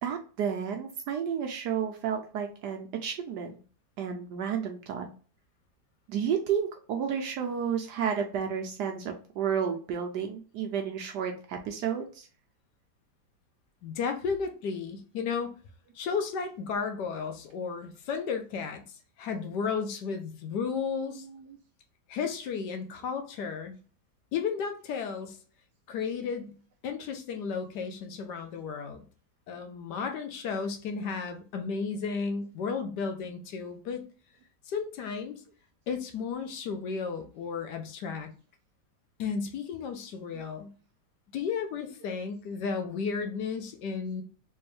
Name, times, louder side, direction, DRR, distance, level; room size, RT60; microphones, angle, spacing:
voice 1, 0.0-3.6 4.0-5.1 6.1-12.3 21.1-21.6, right 7 dB, 70° right, 4 dB, 1.1 m, -32 dB
voice 2, 13.8-15.5 15.9-18.8 19.2-21.3 22.1-23.8 24.3-25.4 25.9-26.6 26.8-29.0 29.5-34.0 34.7-35.4 35.9-38.3 39.2-40.7 41.3-44.2, left 5 dB, 70° left, 5 dB, 1.3 m, -33 dB
3.4 x 3.1 x 3.1 m, 0.39 s
omnidirectional pair, 2.0 m